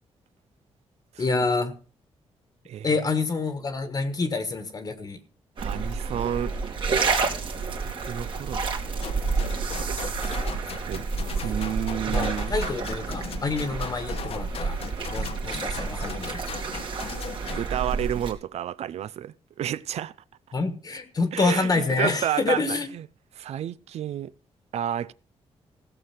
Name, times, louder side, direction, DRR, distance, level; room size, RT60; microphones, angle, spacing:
voice 1, 1.2-1.7 2.8-5.2 12.1-14.8 15.1-16.6 20.5-22.9, left 3 dB, 35° left, 1.3 m, -27 dB
voice 2, 2.7-3.0 5.6-6.6 7.8-8.6 10.9-11.1 11.4-12.5 17.5-20.1 21.3-23.1 23.3-24.3 24.7-25.1, right 10 dB, 80° right, 0.5 m, -31 dB
sound 1, 5.6-18.3, right 4 dB, 50° right, 2.5 m, -29 dB
sound 2, 9.0-17.7, left 7 dB, 65° left, 1.2 m, -38 dB
16.0 x 6.8 x 5.8 m
wide cardioid pair, 130°, 11 cm